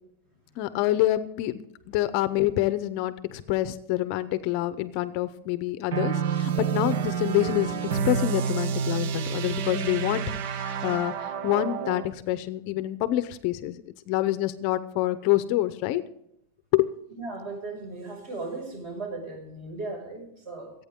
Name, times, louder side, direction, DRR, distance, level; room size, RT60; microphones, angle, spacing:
voice 1, 0.6-1.6 1.9-13.8 14.1-16.0 16.7-16.9, left 15 dB, 40° left, 13 dB, 0.7 m, -27 dB
sound 1, 5.9-12.1, right 7 dB, 65° right, 1.1 m, -29 dB
voice 2, 17.2-20.7, right 3 dB, 35° right, 2 dB, 5.7 m, -36 dB
25.5 x 9.1 x 3.7 m, 0.80 s
supercardioid pair, 175°, 0 cm